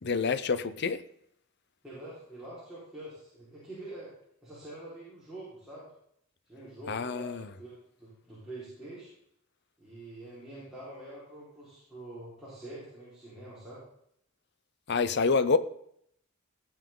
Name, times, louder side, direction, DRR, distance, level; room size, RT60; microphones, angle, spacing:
voice 1, 0.0-1.0 6.9-7.5 14.9-15.6, left 4 dB, 55° left, 0.7 m, -27 dB
voice 2, 1.8-4.1 4.4-5.9 6.5-9.1 9.8-13.8, right 1 dB, 5° right, 4.5 m, -45 dB
18.0 x 7.3 x 3.9 m
head